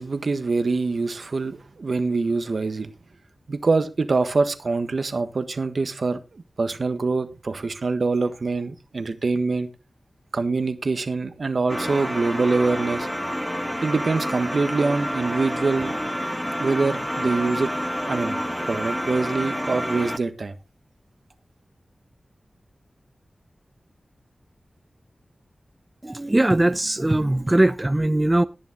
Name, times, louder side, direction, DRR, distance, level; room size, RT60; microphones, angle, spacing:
voice 1, 0.0-2.9 3.5-6.2 6.6-9.7 10.3-13.1 13.8-15.9 16.6-17.7 18.0-18.4 18.7-20.6, right 3 dB, 65° right, 1.5 m, -24 dB
sound 1, 11.7-20.2, equal, 5° left, 0.9 m, -28 dB
voice 2, 26.0-28.4, right 1 dB, 25° right, 0.6 m, -20 dB
17.5 x 7.0 x 3.8 m
cardioid pair, 50°, 0 cm